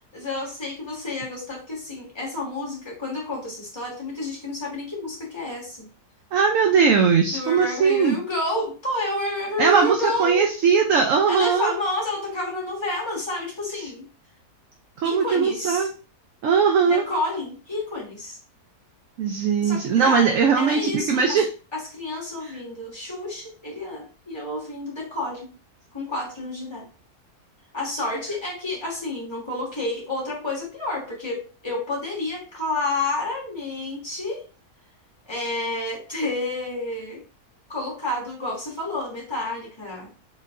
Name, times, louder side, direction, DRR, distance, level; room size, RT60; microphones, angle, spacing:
voice 1, 0.1-5.9 7.3-10.4 11.3-14.1 15.0-15.9 16.9-18.4 19.6-21.4 21.7-25.5 25.9-26.9 27.7-34.5 35.3-37.2 37.7-40.1, left 2 dB, 15° left, -5 dB, 1.6 m, -30 dB
voice 2, 6.3-8.2 9.6-11.7 15.0-15.9 16.4-17.0 19.2-21.5 22.4-22.6, right 6 dB, 65° right, 3 dB, 0.9 m, -20 dB
4.1 x 3.9 x 2.5 m, 0.34 s
omnidirectional pair, 1.7 m